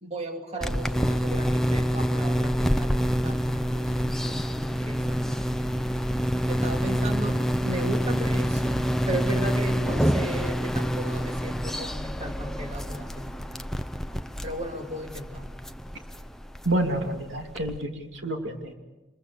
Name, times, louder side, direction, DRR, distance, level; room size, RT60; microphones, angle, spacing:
voice 1, 0.0-2.9 3.2-5.0 5.3-5.7 6.5-7.4 7.6-8.8 9.1-13.3 14.4-15.5, right 1 dB, 35° right, 3 dB, 2.7 m, -35 dB
sound 1, 0.6-17.8, equal, ahead, 0.7 m, -27 dB
voice 2, 16.6-18.7, right 1 dB, 80° right, 3 dB, 2.8 m, -28 dB
26.5 x 22.0 x 7.1 m, 1.1 s
head